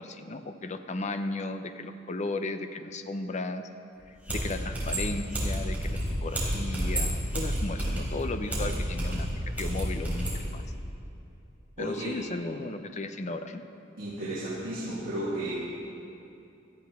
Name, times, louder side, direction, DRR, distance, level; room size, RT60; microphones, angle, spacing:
voice 1, 0.0-3.6 4.1-9.3 9.6-10.6 11.8-13.6, left 2 dB, 40° left, 8 dB, 0.7 m, -35 dB
sound 1, 4.0-4.1 4.3-10.4, equal, 10° right, 3.8 m, -30 dB
voice 2, 11.8-12.2 14.0-15.5, right 1 dB, 50° right, -10 dB, 2.7 m, -33 dB
17.0 x 13.5 x 3.6 m, 2.8 s
head